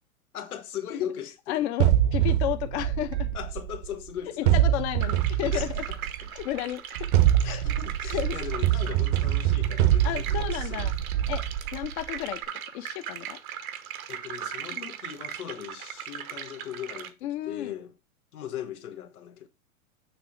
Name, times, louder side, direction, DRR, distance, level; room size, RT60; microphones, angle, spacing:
voice 1, 0.3-1.7 3.3-4.6 5.5-6.3 7.4-10.9 14.1-17.1 17.4-17.9 18.3-19.5, left 9 dB, 90° left, 1.4 m, -38 dB
voice 2, 1.5-3.3 4.4-5.8 6.3-6.8 7.4-7.6 8.1-8.4 10.0-10.9 11.3-11.4 11.7-12.4 12.7-13.4 14.7-14.9 17.2-17.7, left 13 dB, 50° left, 0.8 m, -32 dB
sound 1, 1.8-3.9 4.5-6.3 7.0-12.0, right 12 dB, 50° right, 0.8 m, -24 dB
sound 2, 5.0-17.1, right 9 dB, 75° right, 1.0 m, -39 dB
6.8 x 3.0 x 4.5 m
hypercardioid pair, 135°, 43 cm